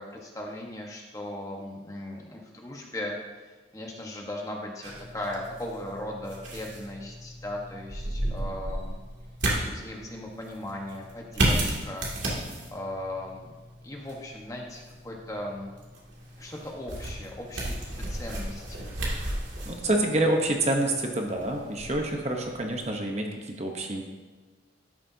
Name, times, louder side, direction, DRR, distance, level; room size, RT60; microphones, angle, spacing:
voice 1, 0.0-3.2 3.7-9.0 9.5-12.1 12.7-13.5 13.8-15.7 16.4-18.9 19.8-20.0, left 1 dB, 15° left, -1 dB, 1.2 m, -38 dB
sound 1, 4.8-22.9, right 1 dB, 80° right, 2.4 m, -34 dB
voice 2, 19.7-23.3 23.6-24.1, right 1 dB, 35° right, 2 dB, 0.9 m, -27 dB
12.5 x 9.9 x 2.8 m, 1.3 s
head